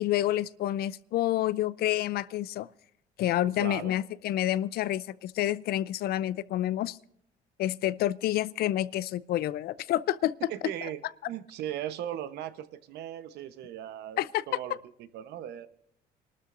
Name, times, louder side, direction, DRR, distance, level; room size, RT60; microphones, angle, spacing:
voice 1, 0.0-2.7 3.2-7.0 7.6-10.4 14.2-14.6, left 13 dB, 65° left, 0.5 m, -28 dB
voice 2, 3.6-3.9 10.5-11.0 11.3-15.7, right 11 dB, 80° right, 1.0 m, -38 dB
26.0 x 12.5 x 2.6 m
cardioid pair, 110°, 17 cm